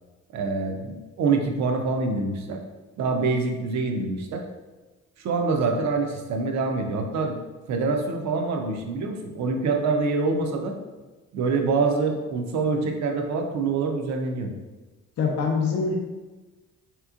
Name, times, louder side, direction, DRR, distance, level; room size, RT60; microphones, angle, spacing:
voice 1, 0.3-2.6 3.0-4.4 5.2-7.4 7.7-10.8 11.3-14.5, right 4 dB, 65° right, 3 dB, 0.6 m, -25 dB
voice 2, 15.2-16.0, left 5 dB, 55° left, 0 dB, 0.5 m, -24 dB
3.4 x 2.9 x 2.4 m, 1.2 s
cardioid pair, 90°, 30 cm